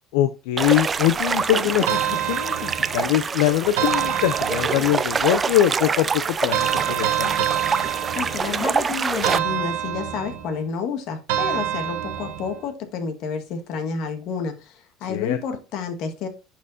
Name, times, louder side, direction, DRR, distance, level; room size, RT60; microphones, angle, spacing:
voice 1, 0.1-7.4 15.1-15.4, left 13 dB, 85° left, 0.4 m, -23 dB
sound 1, 0.6-9.4, right 5 dB, 30° right, 0.4 m, -25 dB
sound 2, 1.9-3.2 3.8-5.1 6.5-8.7 9.2-10.5 11.3-12.6, right 11 dB, 90° right, 1.1 m, -26 dB
voice 2, 8.1-16.3, left 5 dB, 65° left, 1.6 m, -30 dB
11.0 x 4.4 x 2.7 m
supercardioid pair, 110°, 0 cm